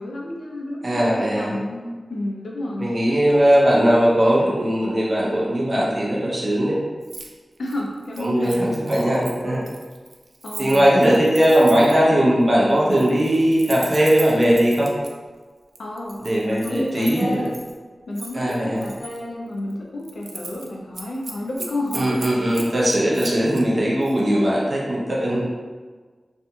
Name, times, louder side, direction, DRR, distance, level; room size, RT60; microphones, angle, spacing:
voice 1, 0.0-3.2 7.6-8.7 10.4-11.1 12.1-12.4 15.8-16.2 16.5-17.6 18.1-22.7, left 1 dB, 90° left, -2 dB, 0.5 m, -31 dB
voice 2, 0.8-1.5 2.8-6.8 8.2-9.6 10.6-14.9 16.2-17.5 18.3-18.9 21.9-25.5, equal, 40° right, -6 dB, 0.7 m, -19 dB
Keys jangling, 7.0-7.3 7.6-12.1 12.8-15.1 15.8-17.7 18.2-19.2 19.6-19.7 20.0-20.7 20.9-23.6 24.0-24.2, right 3 dB, 60° right, 0.3 m, -38 dB
2.8 x 2.5 x 2.3 m, 1.4 s
wide cardioid pair, 100°, 0 cm